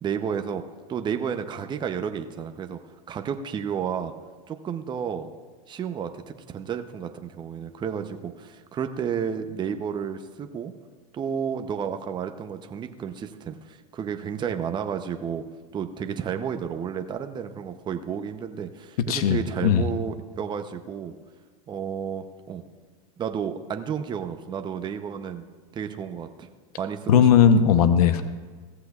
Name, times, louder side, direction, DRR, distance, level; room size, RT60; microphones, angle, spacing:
voice 1, 0.0-0.6 0.9-2.8 3.1-4.1 4.5-5.3 5.7-6.2 6.5-10.7 11.1-15.4 15.7-21.2 21.7-22.6 23.2-25.4 25.7-26.5 26.8-27.3, right 7 dB, 25° right, 7 dB, 0.8 m, -31 dB
voice 2, 19.1-19.8 27.1-28.2, left 7 dB, 75° left, 10 dB, 0.9 m, -18 dB
16.5 x 14.5 x 2.4 m, 1.4 s
supercardioid pair, 120°, 19 cm